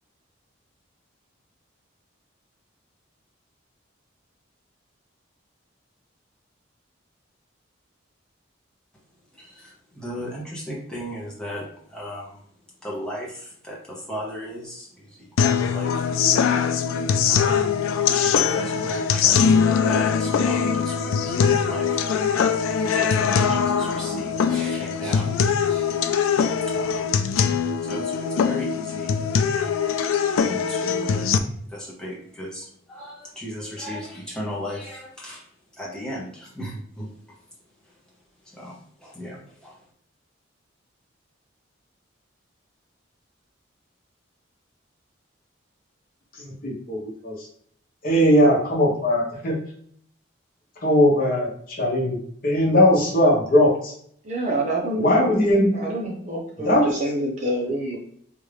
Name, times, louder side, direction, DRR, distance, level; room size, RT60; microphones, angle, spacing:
voice 1, 9.4-12.4 12.8-16.0 17.2-17.7 18.1-22.0 22.8-25.4 25.7-25.9 26.7-27.1 27.8-29.2 30.4-35.4 35.8-37.1 38.5-38.8 39.0-39.7, equal, 5° left, -4 dB, 0.8 m, -36 dB
sound 1, 15.4-31.4, left 6 dB, 85° left, 0.3 m, -22 dB
voice 2, 46.4-47.4 48.0-49.6 50.8-53.9 55.0-55.7 56.6-56.8, left 1 dB, 45° left, -3 dB, 1.0 m, -19 dB
voice 3, 54.2-55.2 55.7-58.0, right 1 dB, 35° right, -3 dB, 1.0 m, -27 dB
3.4 x 2.7 x 3.4 m, 0.63 s
head